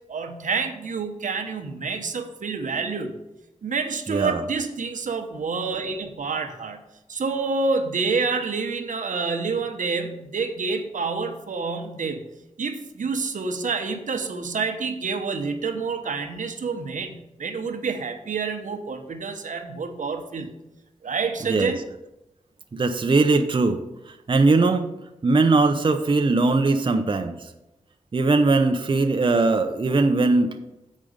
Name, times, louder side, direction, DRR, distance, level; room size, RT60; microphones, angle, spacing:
voice 1, 0.1-3.2 3.6-6.8 7.1-12.2 12.6-20.5 21.0-21.8, right 4 dB, 80° right, 6 dB, 0.9 m, -28 dB
voice 2, 4.1-4.4 21.4-21.7 22.7-23.8 24.1-24.9 25.2-27.5 28.1-30.6, right 3 dB, 40° right, 6 dB, 0.6 m, -20 dB
7.4 x 5.1 x 6.5 m, 0.93 s
wide cardioid pair, 85°, 13 cm